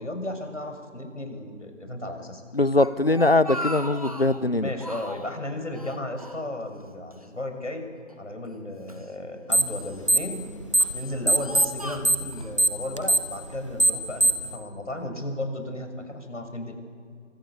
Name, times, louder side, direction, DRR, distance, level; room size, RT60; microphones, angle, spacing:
voice 1, 0.0-2.4 4.6-7.9 8.2-10.4 10.9-16.8, left 1 dB, 70° left, 5 dB, 6.7 m, -34 dB
voice 2, 2.5-4.7, left 2 dB, 50° left, 16 dB, 1.1 m, -21 dB
Speech, 2.5-4.4 4.8-5.3 5.7-6.8 7.1-7.3 8.1-9.1 9.8-10.2 10.8-12.5, equal, 30° right, 1.6 m, -38 dB
sound 1, 9.5-9.8 10.0-11.0 11.3-14.5, right 1 dB, 25° left, 1.6 m, -21 dB
28.5 x 25.0 x 8.4 m, 2.2 s
figure-of-eight pair, 180°, 38 cm